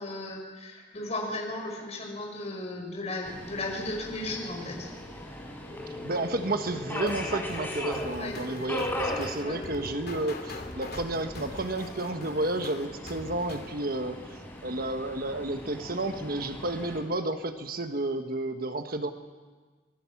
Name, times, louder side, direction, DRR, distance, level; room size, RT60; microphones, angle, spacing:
voice 1, 0.0-4.9 8.1-8.3 9.4-9.7, left 2 dB, 40° left, 1 dB, 5.6 m, -35 dB
Subway metro underground, 3.2-17.0, left 1 dB, 10° left, 5.5 m, -39 dB
sound 1, 5.7-14.0, left 2 dB, 5° right, 5.1 m, -44 dB
voice 2, 6.0-19.1, right 2 dB, 55° right, 7 dB, 1.3 m, -31 dB
sound 2, 7.1-13.7, left 2 dB, 60° left, 2.7 m, -43 dB
25.5 x 20.5 x 7.2 m, 1.4 s
head